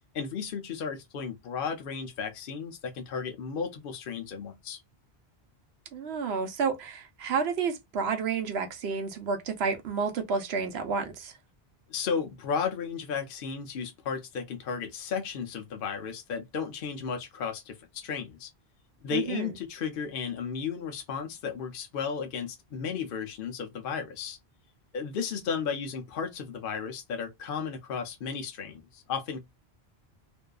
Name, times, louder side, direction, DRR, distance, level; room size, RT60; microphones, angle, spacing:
voice 1, 0.1-4.8 11.9-18.5 19.0-24.4 24.9-29.4, left 6 dB, 60° left, 0.7 m, -34 dB
voice 2, 5.9-11.3 19.1-19.5, right 5 dB, 80° right, 0.9 m, -30 dB
2.6 x 2.3 x 2.2 m
omnidirectional pair, 1.1 m